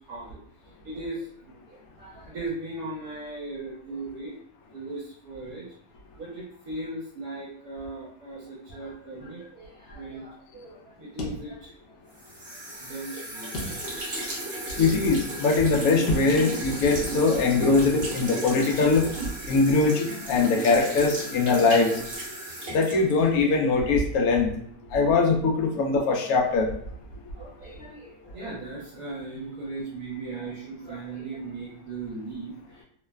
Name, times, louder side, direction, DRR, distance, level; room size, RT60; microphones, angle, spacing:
voice 1, 0.1-0.4 0.8-4.3 4.7-5.7 6.2-11.9 12.7-14.1 14.5-14.6 27.4-32.8, right 2 dB, 70° right, -5 dB, 1.1 m, -38 dB
sound 1, 11.2-12.1 12.4-12.5 13.5-14.2 14.7-14.8 16.1-16.6 16.9-17.6, left 1 dB, 90° left, 1.2 m, -33 dB
sound 2, 12.2-23.6, right 2 dB, 45° right, 0.8 m, -35 dB
voice 2, 14.8-19.1 19.5-22.0 22.7-24.5 24.9-26.7, left 4 dB, 70° left, 0 dB, 0.9 m, -22 dB
2.9 x 2.1 x 2.2 m, 0.64 s
omnidirectional pair, 1.7 m